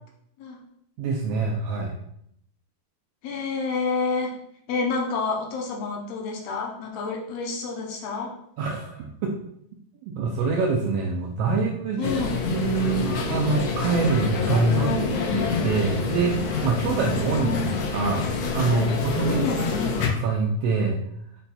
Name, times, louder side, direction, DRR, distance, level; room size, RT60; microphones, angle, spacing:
voice 1, 1.0-1.9 8.6-9.3 10.2-12.1 12.5-14.9 15.3-17.6 17.9-18.3 18.5-19.5 20.2-21.0, right 4 dB, 85° right, 0 dB, 1.4 m, -25 dB
voice 2, 3.2-4.3 4.7-8.3 12.0-12.4 17.4-17.8 19.2-20.0, left 4 dB, 75° left, 1 dB, 1.6 m, -29 dB
sound 1, 12.0-20.1, left 4 dB, 90° left, 2.1 m, -27 dB
5.5 x 2.2 x 4.0 m, 0.73 s
omnidirectional pair, 3.3 m